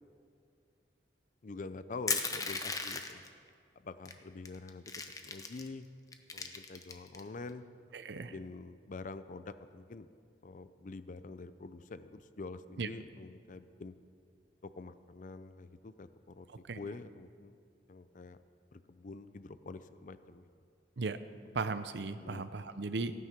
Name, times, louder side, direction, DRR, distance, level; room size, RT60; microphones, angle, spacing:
voice 1, 1.4-3.2 3.8-4.9 5.2-5.9 6.3-7.6 8.3-10.1 10.4-13.9 14.7-16.5 16.7-17.5 17.9-18.4 18.7-20.5 22.2-22.5, left 3 dB, 45° left, 13 dB, 0.5 m, -46 dB
Crushing, 2.1-3.3 4.1-4.2 4.5-5.7 6.1-7.2, left 4 dB, 20° left, 0.8 m, -36 dB
voice 2, 7.9-8.3 12.8-12.9 16.7-16.8 21.0-21.2 21.5-23.1, right 4 dB, 75° right, 11 dB, 0.7 m, -36 dB
16.0 x 9.4 x 5.9 m, 2.3 s
head